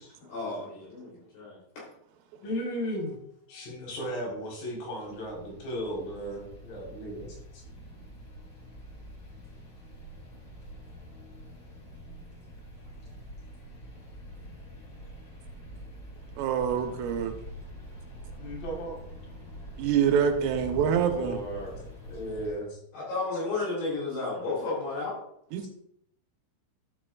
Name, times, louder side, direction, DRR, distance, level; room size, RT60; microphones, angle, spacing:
voice 1, 0.3-1.9 3.7-3.8 22.9-25.2, left 3 dB, 55° left, -6 dB, 5.3 m, -33 dB
voice 2, 2.4-3.2 3.5-7.4 18.4-19.0 21.0-22.8, equal, 80° left, -2 dB, 7.4 m, -35 dB
sound 1, 5.0-22.5, equal, 25° left, 4.7 m, -45 dB
voice 3, 16.4-17.4 19.8-21.4 25.5-25.7, right 8 dB, 80° right, 4 dB, 3.8 m, -26 dB
13.0 x 12.5 x 2.5 m, 0.72 s
omnidirectional pair, 5.7 m